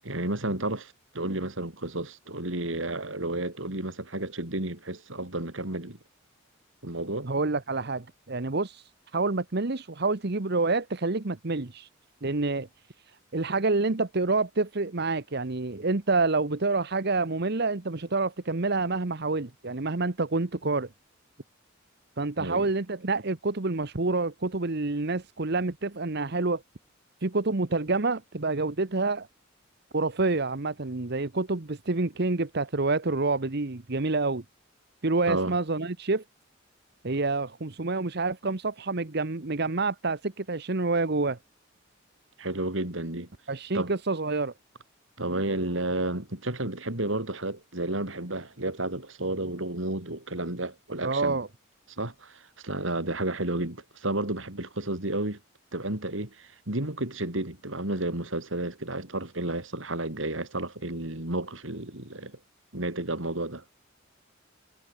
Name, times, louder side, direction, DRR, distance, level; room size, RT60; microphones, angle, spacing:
voice 1, 0.0-6.0 6.8-7.3 22.4-22.7 35.3-35.6 42.4-43.3 43.7-43.9 45.2-51.4 52.0-55.4 55.7-62.4 62.7-63.6, right 2 dB, 70° right, 4.0 m, -32 dB
voice 2, 7.2-11.9 12.2-12.7 13.0-20.9 22.2-26.6 27.2-29.3 29.9-34.4 35.0-36.2 37.0-41.4 43.5-44.5 51.0-51.5, right 3 dB, 55° right, 1.2 m, -28 dB
head